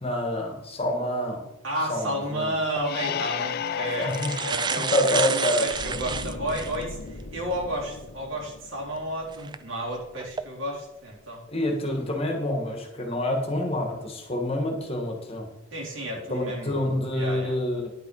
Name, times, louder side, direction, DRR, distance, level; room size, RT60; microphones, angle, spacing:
voice 1, 0.0-1.5 1.9-2.5 4.0-4.3 4.9-5.7 11.5-15.5 16.3-17.9, left 1 dB, 30° left, 2 dB, 1.8 m, -27 dB
voice 2, 1.6-4.2 4.4-11.4 15.7-17.6, right 1 dB, 70° right, -3 dB, 4.0 m, -32 dB
sound 1, 2.7-2.8 3.7-3.8 4.0-6.8 7.4-7.5 9.3-9.6 10.2-10.4, right 6 dB, 20° right, 0.4 m, -30 dB
sound 2, 2.8-6.4, left 8 dB, 45° left, 0.3 m, -33 dB
sound 3, 5.7-10.8 11.0-11.3, left 2 dB, 65° left, 1.1 m, -41 dB
10.5 x 8.3 x 5.0 m, 0.94 s
head